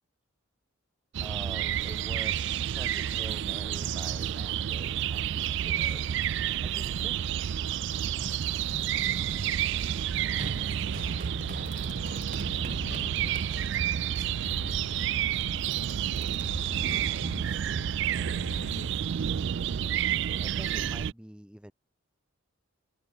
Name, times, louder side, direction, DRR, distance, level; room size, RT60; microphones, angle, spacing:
sound 1, 1.1-21.1, right 9 dB, 55° right, 0.3 m, -30 dB
voice 1, 1.2-6.1 6.6-7.1 20.0-21.7, equal, 5° right, 1.1 m, -46 dB
Run, 7.6-14.0, right 1 dB, 40° right, 2.7 m, -43 dB
voice 2, 10.2-16.2 16.5-17.7 18.3-19.0, left 2 dB, 70° left, 7.3 m, -57 dB
sound 2, 10.9-18.9, left 3 dB, 55° left, 0.6 m, -44 dB
head